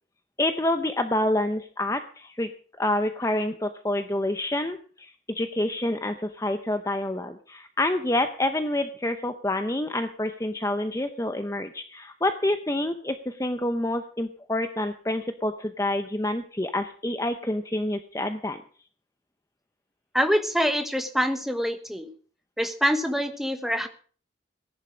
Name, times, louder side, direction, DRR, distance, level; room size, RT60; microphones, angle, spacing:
voice 1, 0.4-2.5 2.8-18.6, left 1 dB, 15° left, 8 dB, 0.7 m, -27 dB
voice 2, 20.1-22.1 22.6-23.9, equal, ahead, 7 dB, 1.3 m, -25 dB
18.0 x 11.0 x 5.1 m, 0.43 s
head